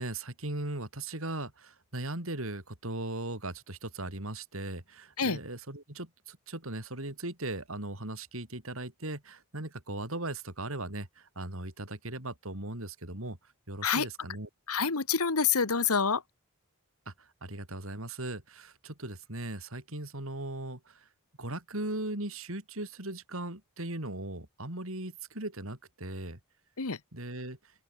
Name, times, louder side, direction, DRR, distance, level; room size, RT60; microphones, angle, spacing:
voice 1, 0.0-13.4 13.7-14.5 17.1-17.2 17.4-21.0 21.4-26.4 27.1-27.6, right 2 dB, 70° right, 4.8 m, -38 dB
voice 2, 14.7-16.2 26.8-27.0, left 6 dB, 90° left, 1.6 m, -27 dB
open air
head